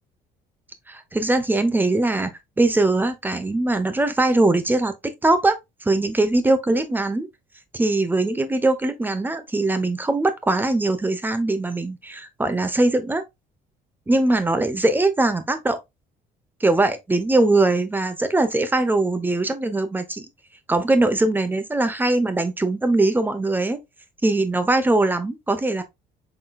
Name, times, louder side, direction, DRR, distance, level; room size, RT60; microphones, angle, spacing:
voice 1, 0.9-2.3 2.6-4.9 5.2-5.6 5.8-7.3 7.7-13.2 14.1-15.8 16.6-20.2 20.7-23.8 24.2-25.8, right 2 dB, 10° right, 0.9 m, -21 dB
5.9 x 3.8 x 2.3 m
cardioid pair, 110°, 17 cm